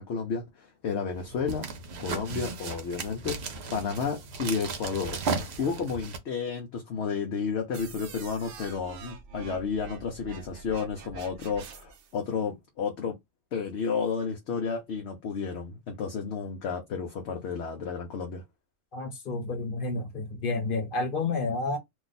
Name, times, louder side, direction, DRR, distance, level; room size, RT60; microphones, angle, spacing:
voice 1, 0.0-1.7 2.0-13.1 13.5-18.4, left 5 dB, 60° left, 0.8 m, -32 dB
sound 1, 1.1-6.2, right 4 dB, 60° right, 0.8 m, -35 dB
sound 2, 7.7-12.1, right 6 dB, 90° right, 0.4 m, -45 dB
voice 2, 18.9-21.8, left 3 dB, 40° left, 1.1 m, -30 dB
2.6 x 2.4 x 3.9 m
omnidirectional pair, 1.5 m